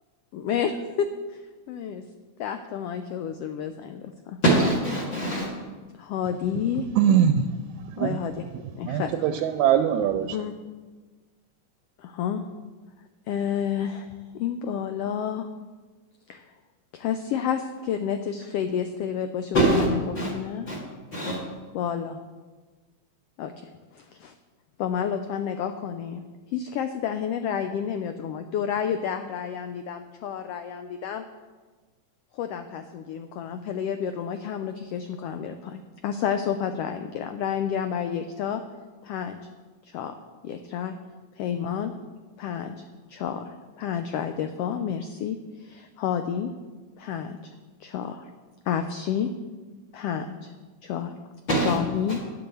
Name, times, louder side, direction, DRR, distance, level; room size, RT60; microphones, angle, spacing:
voice 1, 0.3-1.4 1.7-2.0 2.4-4.4 6.0-6.9 8.0-8.4 8.8-9.3 10.3-10.5 12.0-12.4 13.3-15.5 16.3-16.4 16.9-20.7 21.7-22.2 23.4-24.3 24.8-26.2 26.5-31.2 32.3-38.6 39.0-39.4 39.8-40.1 40.4-40.9 41.4-41.9 42.4-42.8 43.1-46.5 47.0-47.5 47.8-48.2 48.7-49.3 49.9-50.5 50.8-51.1 51.6-52.2, left 8 dB, 90° left, 8 dB, 1.3 m, -30 dB
voice 2, 4.4-5.5 19.5-19.9 20.2-20.3 20.7-20.8 21.1-21.4 51.5-51.8, right 1 dB, 40° left, -3 dB, 2.4 m, -22 dB
voice 3, 7.0-7.5 7.9-8.2 8.8-10.4, right 9 dB, 80° right, 9 dB, 1.9 m, -22 dB
9.6 x 7.8 x 6.9 m, 1.3 s
omnidirectional pair, 3.4 m